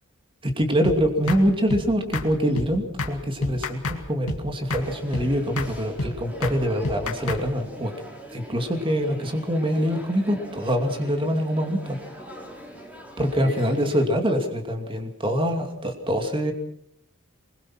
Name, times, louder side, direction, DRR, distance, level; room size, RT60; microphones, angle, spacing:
voice 1, 0.4-7.9 8.3-12.0 13.2-16.5, equal, 25° right, 4 dB, 2.6 m, -24 dB
sound 1, 0.8-1.0 1.3-1.4 1.7-1.9 2.1-2.3 2.6-2.7 3.0-3.1 3.4-4.0 4.3-4.4 4.7-4.9 5.1-5.3 5.6-5.7 6.0-6.1 6.4-6.6 6.8-7.4, left 2 dB, 80° left, 2.3 m, -28 dB
danish crowd, 4.8-14.1, equal, 5° right, 4.1 m, -42 dB
23.5 x 21.5 x 5.9 m, 0.72 s
head